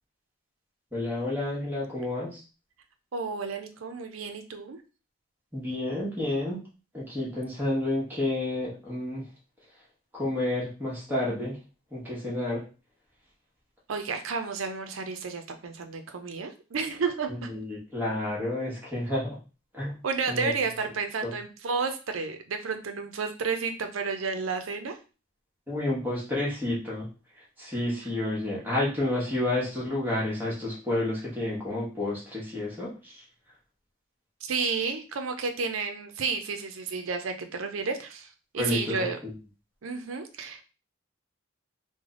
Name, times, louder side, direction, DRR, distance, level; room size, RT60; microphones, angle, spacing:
voice 1, 0.9-2.4 5.5-6.6 6.9-9.3 10.1-11.6 11.9-12.6 17.3-19.4 19.7-19.9 20.3-20.5 21.2-21.3 25.7-27.1 27.6-33.1 38.6-39.3, left 1 dB, 10° right, -6 dB, 1.1 m, -30 dB
voice 2, 3.1-4.8 13.9-17.5 20.0-25.0 34.4-39.2 39.8-40.6, right 4 dB, 80° right, 7 dB, 0.5 m, -31 dB
3.3 x 2.1 x 3.6 m, 0.33 s
head